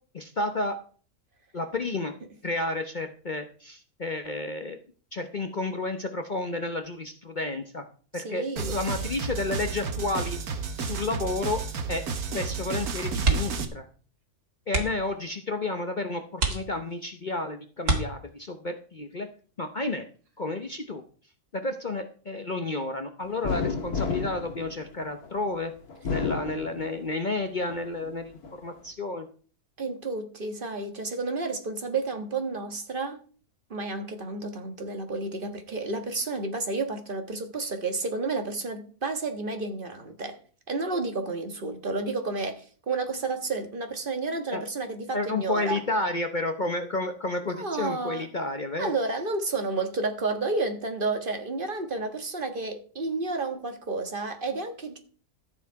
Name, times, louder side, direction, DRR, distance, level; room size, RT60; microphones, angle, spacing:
voice 1, 0.1-0.8 1.5-2.1 2.4-4.8 5.1-7.8 8.1-11.6 11.9-12.0 12.3-13.9 14.7-19.3 19.6-20.1 20.4-21.0 21.5-25.7 26.1-29.3 44.5-44.6 45.1-48.9, left 2 dB, 40° left, 0.8 m, -31 dB
voice 2, 8.1-8.8 29.8-33.2 33.7-40.4 40.7-45.8 47.6-48.3 48.8-55.0, right 3 dB, 35° right, 1.7 m, -31 dB
sound 1, 8.6-13.6, right 5 dB, 70° right, 1.7 m, -32 dB
sound 2, 13.2-13.7 14.0-14.2 14.6-15.1 15.8-15.9 16.3-17.1 17.8-18.6 20.2-20.5 20.8-20.9, right 4 dB, 90° right, 2.6 m, -27 dB
sound 3, 23.4-25.4 25.9-27.2 27.7-28.6, left 5 dB, 70° left, 2.1 m, -31 dB
13.5 x 7.3 x 4.7 m
omnidirectional pair, 1.6 m